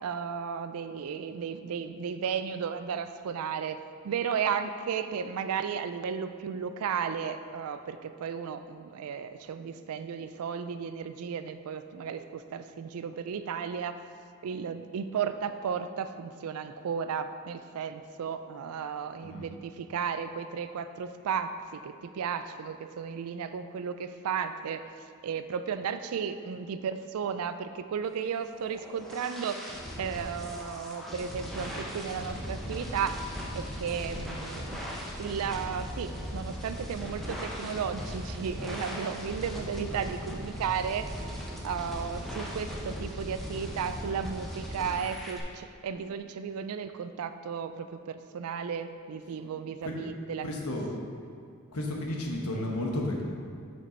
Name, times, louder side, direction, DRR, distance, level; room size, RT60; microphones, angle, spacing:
voice 1, 0.0-3.8 4.0-14.0 14.4-24.8 25.2-33.2 33.5-34.8 35.2-41.1 41.6-50.5, right 7 dB, 70° right, 10 dB, 0.3 m, -34 dB
sound 1, 28.4-45.4, equal, ahead, 0.8 m, -38 dB
voice 2, 50.4-50.9 51.7-53.2, left 1 dB, 80° left, -1 dB, 1.1 m, -32 dB
6.7 x 5.1 x 4.3 m, 2.3 s
head